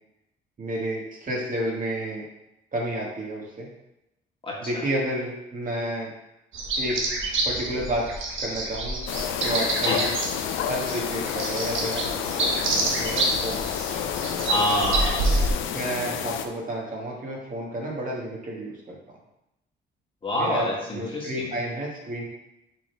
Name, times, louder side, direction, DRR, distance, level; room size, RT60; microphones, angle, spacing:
voice 1, 0.6-2.2 2.7-3.7 4.6-6.1 6.8-7.0 7.5-8.1 8.4-9.0 9.4-10.1 10.7-13.6 15.7-19.2 20.3-22.2, right 1 dB, 40° right, -2 dB, 1.8 m, -31 dB
sound 1, 6.5-15.5, right 2 dB, 75° right, 1.4 m, -28 dB
sound 2, 9.1-16.5, left 9 dB, 85° left, 0.5 m, -30 dB
voice 2, 9.8-10.1 14.5-15.5 20.2-21.5, left 1 dB, 25° left, -4 dB, 2.0 m, -27 dB
6.1 x 4.2 x 4.6 m, 0.91 s
cardioid pair, 90°, 20 cm